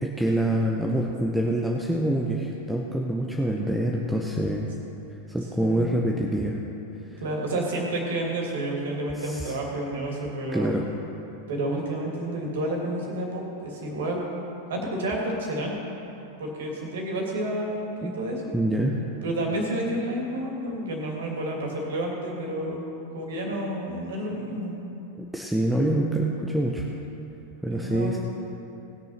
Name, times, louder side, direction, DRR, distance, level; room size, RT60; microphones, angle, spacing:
voice 1, 0.0-4.7 5.3-6.6 7.1-7.2 9.2-9.5 10.5-10.8 18.0-18.1 18.5-19.0 25.2-26.9 27.6-28.2, right 1 dB, 5° right, -1 dB, 0.9 m, -26 dB
voice 2, 5.6-5.9 7.2-10.7 11.5-14.3 14.7-15.8 16.4-18.4 19.2-22.9 23.1-24.7 27.7-28.2, right 1 dB, 60° right, -1 dB, 2.9 m, -30 dB
19.0 x 6.8 x 5.9 m, 2.9 s
figure-of-eight pair, 90°, 0 cm